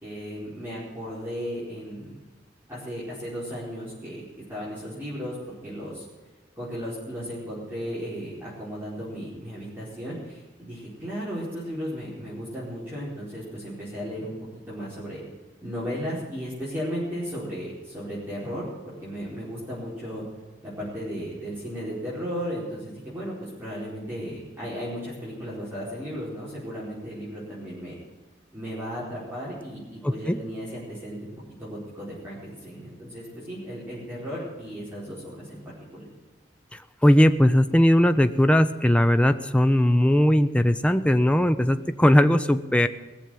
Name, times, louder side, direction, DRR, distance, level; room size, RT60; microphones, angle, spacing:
voice 1, 0.0-2.1 2.7-4.2 4.5-6.0 6.6-14.3 14.7-15.2 15.6-20.2 20.6-28.0 28.5-31.3 31.6-35.6 35.9-36.1, equal, 10° right, -9 dB, 4.7 m, -35 dB
voice 2, 30.0-30.4 37.0-42.9, equal, 5° left, 10 dB, 0.6 m, -19 dB
19.5 x 7.2 x 7.7 m, 1.2 s
head